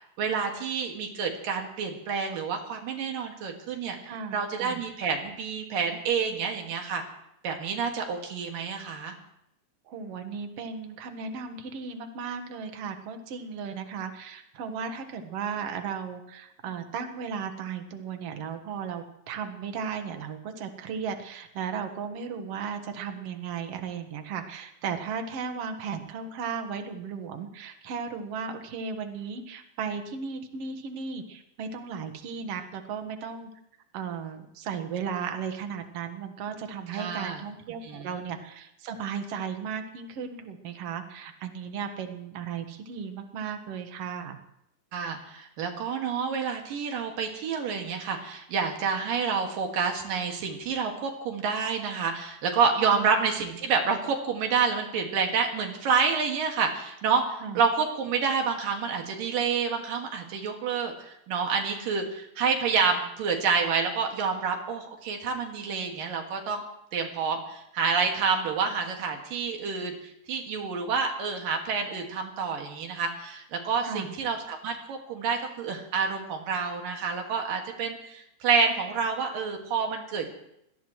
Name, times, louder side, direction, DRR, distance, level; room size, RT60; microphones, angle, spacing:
voice 1, 0.2-4.0 4.3-7.0 7.4-9.2 36.9-37.4 37.8-38.1 44.9-66.6 66.9-70.0 70.3-80.3, right 5 dB, 75° right, 3 dB, 3.6 m, -28 dB
voice 2, 4.0-4.8 9.9-33.5 33.9-44.4 52.9-53.1 57.4-57.6 73.8-74.1, right 6 dB, 55° right, 6 dB, 2.0 m, -35 dB
24.5 x 18.0 x 3.1 m, 0.79 s
omnidirectional pair, 4.0 m